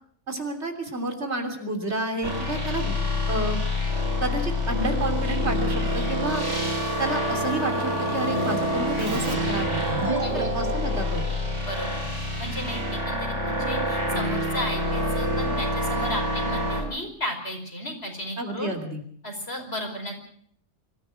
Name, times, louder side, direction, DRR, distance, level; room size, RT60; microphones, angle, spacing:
voice 1, 0.3-3.0 3.3-3.6 4.2-6.4 7.0-9.9 10.3-11.3 18.4-19.0, right 2 dB, 70° right, 4 dB, 3.5 m, -30 dB
sound 1, 2.2-16.8, left 1 dB, 90° right, 5.9 m, -27 dB
Keyboard (musical), 9.0-12.4, right 3 dB, 30° right, 1.6 m, -32 dB
voice 2, 10.2-10.6 11.6-12.1 12.4-18.7 19.2-20.2, left 1 dB, 60° left, 3 dB, 5.5 m, -34 dB
24.0 x 15.0 x 7.6 m, 0.62 s
omnidirectional pair, 1.2 m